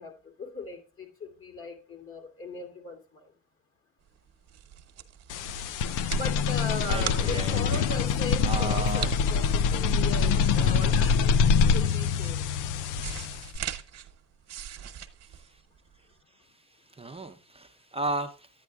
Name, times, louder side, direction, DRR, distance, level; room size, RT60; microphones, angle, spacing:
voice 1, 0.0-3.3 6.2-9.4 9.7-12.5, left 2 dB, 45° left, 4 dB, 2.5 m, -38 dB
sound 1, 4.2-16.1, right 9 dB, 60° right, 0.9 m, -40 dB
sound 2, 5.3-13.6, left 6 dB, 90° left, 0.5 m, -25 dB
voice 2, 6.9-7.9 8.4-9.1 16.9-18.5, right 2 dB, 20° right, 5 dB, 0.6 m, -34 dB
10.0 x 9.1 x 2.3 m, 0.34 s
cardioid pair, 90°, 30 cm